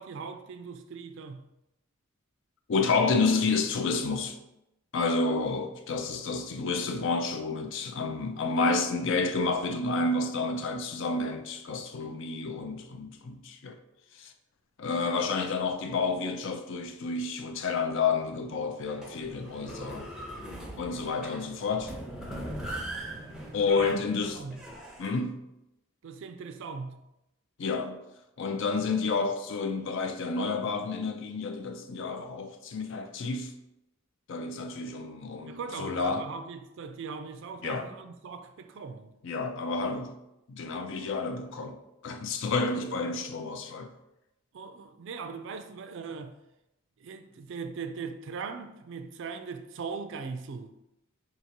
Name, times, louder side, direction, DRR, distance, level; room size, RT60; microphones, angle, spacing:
voice 1, 0.0-1.5 23.7-24.0 24.3-24.6 26.0-27.0 35.5-39.1 42.5-42.6 44.5-46.4 47.0-50.7, right 5 dB, 60° right, 0.4 m, -40 dB
voice 2, 2.7-4.4 4.9-13.8 14.1-14.3 14.8-20.1 20.8-21.9 23.5-24.4 25.0-25.4 27.6-28.0 28.4-33.5 34.3-36.2 37.6-37.9 39.2-40.1 40.5-41.8 42.0-43.9, left 4 dB, 60° left, 0.4 m, -30 dB
sound 1, 18.9-25.1, right 1 dB, 5° right, 0.6 m, -40 dB
4.6 x 2.9 x 2.8 m
head